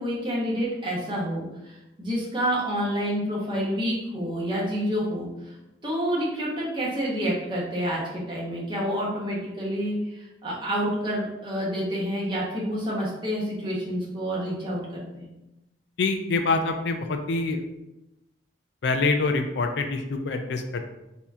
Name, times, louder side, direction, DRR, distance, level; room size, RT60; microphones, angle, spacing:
voice 1, 0.0-5.3 5.8-15.3, equal, 25° right, -5 dB, 1.2 m, -28 dB
voice 2, 16.0-17.6 18.8-20.8, left 3 dB, 65° left, 6 dB, 0.4 m, -25 dB
4.2 x 2.8 x 3.6 m, 0.95 s
head